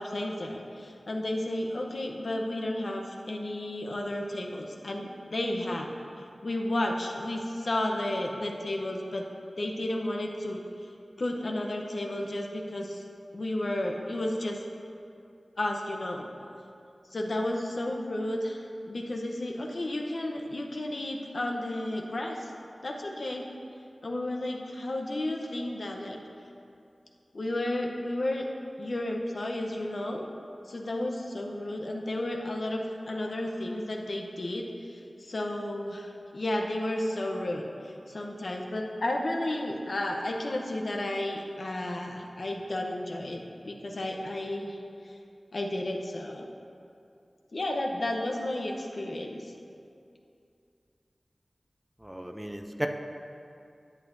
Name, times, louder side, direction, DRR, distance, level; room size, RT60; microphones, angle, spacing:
voice 1, 0.0-5.9 6.2-9.3 9.6-10.6 11.2-13.0 13.3-14.6 15.6-16.3 17.1-22.5 22.8-23.4 24.0-26.2 27.3-28.5 28.8-30.2 30.7-43.4 43.7-44.8 45.0-45.2 45.5-46.5 47.5-49.5, left 1 dB, 65° left, 1 dB, 0.8 m, -32 dB
voice 2, 52.0-52.9, equal, 10° right, 5 dB, 0.5 m, -34 dB
10.5 x 8.2 x 2.7 m, 2.5 s
wide cardioid pair, 55°, 0 cm